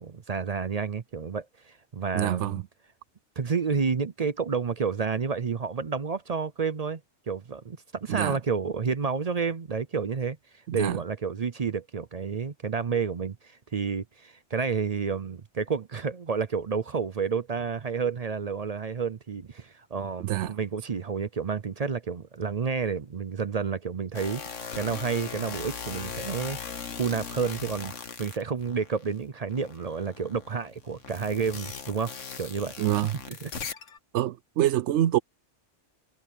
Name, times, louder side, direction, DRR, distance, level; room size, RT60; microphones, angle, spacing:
voice 1, 0.0-2.6 3.4-7.0 7.3-10.4 10.7-26.6 26.9-27.9 28.2-32.7 33.3-33.5, right 5 dB, 45° right, 0.5 m, -30 dB
voice 2, 2.1-2.6 8.1-8.4 10.7-11.0 20.2-20.6 32.8-33.2 34.1-35.2, right 12 dB, 70° right, 0.9 m, -26 dB
sound 1, 24.1-29.1 29.5-34.0, left 6 dB, 70° left, 1.7 m, -39 dB
omnidirectional pair, 1.3 m